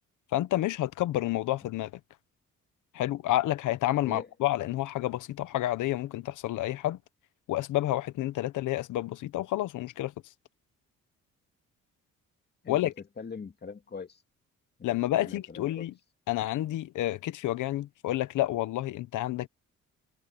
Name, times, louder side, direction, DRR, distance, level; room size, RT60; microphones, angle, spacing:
voice 1, 0.3-1.9 2.9-7.0 7.5-10.1 12.7-12.9 14.8-15.9 16.3-19.5, left 15 dB, 85° left, 1.1 m, -29 dB
voice 2, 13.2-14.2 15.2-15.9, left 5 dB, 35° left, 2.3 m, -41 dB
cardioid pair, 90°, 30 cm